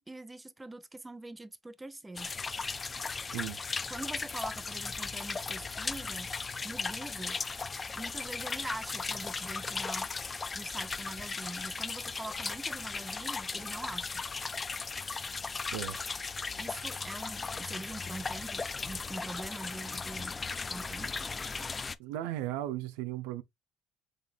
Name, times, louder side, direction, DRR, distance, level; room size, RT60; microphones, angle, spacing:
voice 1, 0.0-2.3 3.9-6.3 6.6-7.4 8.0-10.1 10.5-14.3 16.6-20.3 20.7-21.1, right 2 dB, 15° right, 0.7 m, -43 dB
sound 1, 2.2-22.0, left 4 dB, 30° left, 0.4 m, -37 dB
voice 2, 22.0-23.4, right 13 dB, 80° right, 0.4 m, -36 dB
5.1 x 3.6 x 2.3 m
hypercardioid pair, 60°, 0 cm